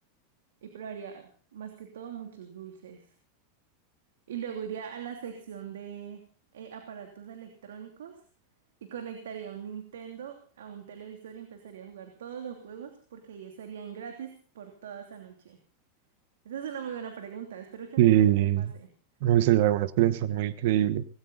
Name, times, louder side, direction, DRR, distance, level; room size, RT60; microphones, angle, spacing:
voice 1, 0.6-3.0 4.3-6.2 6.5-8.2 8.8-15.6 16.4-18.9, right 8 dB, 85° right, 5 dB, 2.9 m, -41 dB
voice 2, 18.0-18.7 19.2-21.0, right 12 dB, 65° right, 15 dB, 1.2 m, -22 dB
19.0 x 17.0 x 4.0 m, 0.38 s
hypercardioid pair, 120°, 0 cm